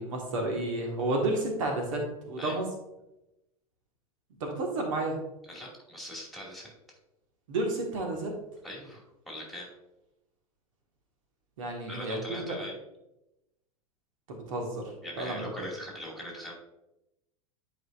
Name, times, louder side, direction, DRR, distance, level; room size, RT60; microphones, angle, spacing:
voice 1, 0.0-2.7 4.4-5.2 7.5-8.3 11.6-12.2 12.5-12.6 14.3-14.9 15.2-15.5, right 2 dB, 60° right, 1 dB, 1.7 m, -31 dB
voice 2, 5.4-6.7 8.6-9.7 11.9-12.8 15.0-16.5, equal, ahead, -3 dB, 2.6 m, -41 dB
11.0 x 5.1 x 2.7 m, 0.92 s
figure-of-eight pair, 90°, 19 cm